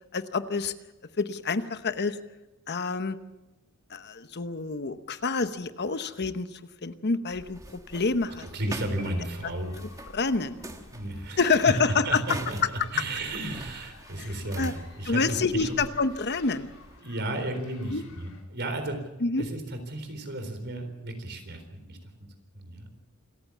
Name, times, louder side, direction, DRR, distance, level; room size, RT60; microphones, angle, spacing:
voice 1, 0.1-0.7 1.2-2.2 2.7-3.2 3.9-8.5 10.1-10.6 11.4-12.4 14.2-14.3 14.6-14.7 15.1-16.7 17.9-18.0 19.2-19.4, left 4 dB, 50° left, 11 dB, 1.0 m, -27 dB
sound 1, 7.3-17.0, right 1 dB, 15° right, 1.6 m, -45 dB
sound 2, 8.4-18.4, left 5 dB, 85° left, 4.7 m, -55 dB
voice 2, 8.5-9.8 10.9-12.6 12.9-15.8 17.0-19.0 19.4-22.1 22.5-22.9, right 1 dB, 55° right, 7 dB, 4.0 m, -33 dB
sound 3, 9.0-10.2, right 3 dB, 75° right, 4.6 m, -51 dB
27.0 x 14.5 x 7.3 m, 1.0 s
head